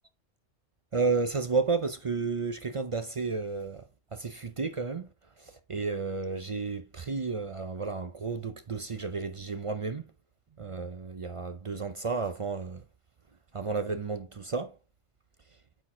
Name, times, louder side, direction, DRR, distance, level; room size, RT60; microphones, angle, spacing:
voice 1, 0.9-10.1 10.6-12.8 13.5-14.8, right 4 dB, 45° right, 0.4 m, -32 dB
9.0 x 4.2 x 3.7 m
omnidirectional pair, 1.2 m